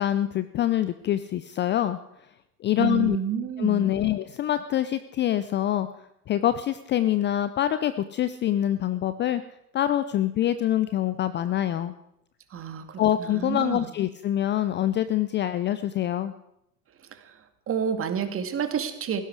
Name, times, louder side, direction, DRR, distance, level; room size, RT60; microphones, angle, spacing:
voice 1, 0.0-2.0 2.6-3.2 3.6-5.9 6.3-9.4 9.7-11.9 13.0-16.3, left 12 dB, 25° left, 13 dB, 0.5 m, -25 dB
voice 2, 2.8-3.9 12.5-13.9 17.1-17.3 17.7-19.2, right 8 dB, 30° right, 7 dB, 2.2 m, -29 dB
17.5 x 15.5 x 4.8 m, 0.81 s
hypercardioid pair, 90°, 46 cm